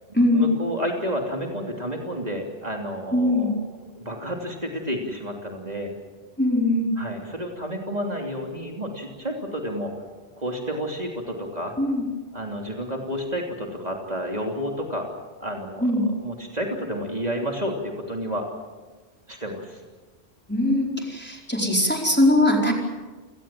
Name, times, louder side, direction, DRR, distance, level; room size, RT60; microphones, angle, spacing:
voice 1, 0.3-3.6 4.0-5.9 6.9-9.9 10.4-11.7 12.3-15.1 15.4-18.5 19.3-19.8, equal, 40° right, 1 dB, 3.3 m, -30 dB
voice 2, 3.1-3.5 6.4-6.9 11.8-12.0 15.8-16.0 20.5-22.7, left 1 dB, 10° left, 0 dB, 4.5 m, -21 dB
28.5 x 19.5 x 7.6 m, 1.3 s
omnidirectional pair, 1.1 m